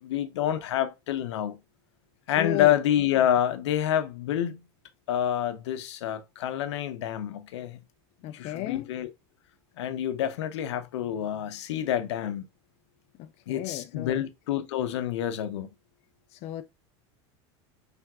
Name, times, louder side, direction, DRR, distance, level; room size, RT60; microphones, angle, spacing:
voice 1, 0.0-1.6 2.3-4.6 5.1-7.8 8.3-9.1 9.8-12.5 13.5-15.7, left 10 dB, 90° left, 0.7 m, -28 dB
voice 2, 2.4-2.8 8.2-8.9 13.2-14.2 16.3-16.6, left 14 dB, 50° left, 0.4 m, -34 dB
5.8 x 3.4 x 2.3 m
supercardioid pair, 115°, 14 cm